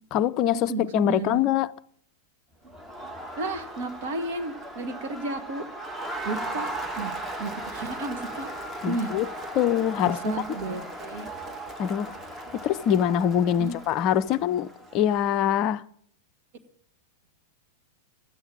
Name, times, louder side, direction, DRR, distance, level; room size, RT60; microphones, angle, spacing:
voice 1, 0.1-1.7 8.8-9.3 9.5-10.3 11.8-12.1 12.5-15.8, left 10 dB, 40° left, 0.5 m, -24 dB
voice 2, 0.7-1.5 3.4-5.7 6.3-6.7 6.9-8.5 8.9-9.1 10.0-11.3 13.6-13.8, right 2 dB, 55° right, 2.1 m, -33 dB
Crowd, 2.6-15.2, right 1 dB, 10° right, 1.7 m, -37 dB
13.5 x 9.0 x 8.9 m
figure-of-eight pair, 95°, 0 cm